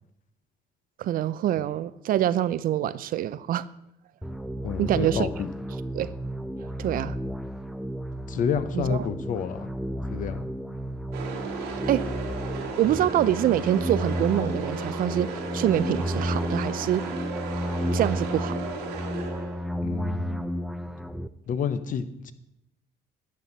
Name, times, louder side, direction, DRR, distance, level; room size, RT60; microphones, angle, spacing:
voice 1, 1.0-3.6 4.8-5.3 5.9-6.1 6.8-7.2 8.7-9.0 11.7-12.1 12.8-15.3 15.5-17.0 17.9-18.6, right 12 dB, 60° right, 16 dB, 0.5 m, -25 dB
sound 1, 4.2-21.3, equal, ahead, 0.4 m, -32 dB
voice 2, 4.6-5.5 8.3-9.7 10.1-10.5 19.8-20.5 21.5-22.3, left 7 dB, 50° left, 12 dB, 0.8 m, -29 dB
sound 2, 11.1-19.8, right 4 dB, 85° right, 1.6 m, -35 dB
12.0 x 7.7 x 4.0 m, 0.83 s
cardioid pair, 110°, 17 cm